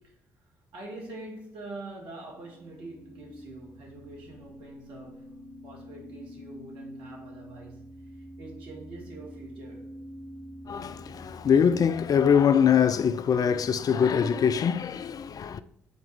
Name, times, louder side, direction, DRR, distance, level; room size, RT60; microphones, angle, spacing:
voice 1, 0.7-5.4 5.6-9.9, right 2 dB, 65° right, 2.1 m, -44 dB
sound 1, 2.2-12.4, equal, 80° left, 1.1 m, -47 dB
voice 2, 10.7-15.6, left 7 dB, 45° left, 0.4 m, -23 dB
7.9 x 4.4 x 3.5 m
figure-of-eight pair, 45°, 9 cm